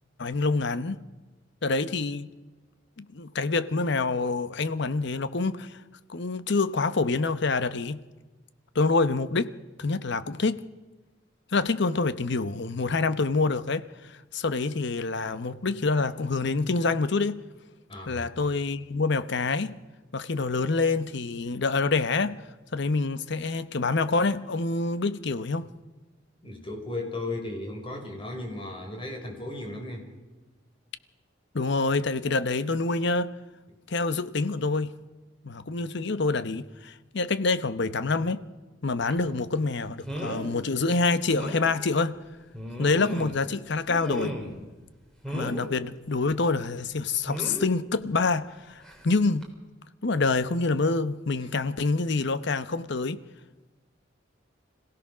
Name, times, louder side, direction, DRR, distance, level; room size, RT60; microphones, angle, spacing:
voice 1, 0.2-1.0 1.6-2.3 3.0-5.8 6.1-8.0 8.7-9.5 9.8-10.6 11.5-17.4 18.1-19.8 20.1-22.4 22.7-25.7 31.5-33.3 33.9-34.9 35.4-38.4 38.8-42.1 42.8-44.4 45.3-49.5 50.0-53.2, left 3 dB, 65° left, 0.9 m, -26 dB
voice 2, 17.9-18.2 26.4-30.1, left 2 dB, 30° left, 4.9 m, -35 dB
sound 1, 39.1-39.3 40.1-40.5 40.9-41.0 41.4-41.6 42.5-43.5 43.9-44.6 45.2-45.7 47.3-47.7 48.8-49.0 49.4-49.5, equal, 5° left, 3.6 m, -35 dB
26.0 x 16.5 x 6.1 m
head